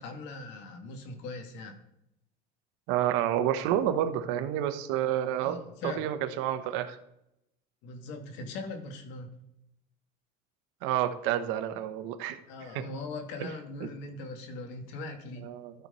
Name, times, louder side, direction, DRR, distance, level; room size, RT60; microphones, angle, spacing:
voice 1, 0.0-1.8 5.4-6.1 7.8-9.3 12.5-15.5, left 3 dB, 75° left, 5 dB, 1.8 m, -40 dB
voice 2, 2.9-5.6 6.0-7.0 10.8-12.4 12.7-12.8 13.4-13.5 13.8-13.9 15.4-15.7, right 11 dB, 80° right, 10 dB, 1.0 m, -29 dB
12.5 x 4.6 x 5.5 m, 0.83 s
cardioid pair, 130°, 19 cm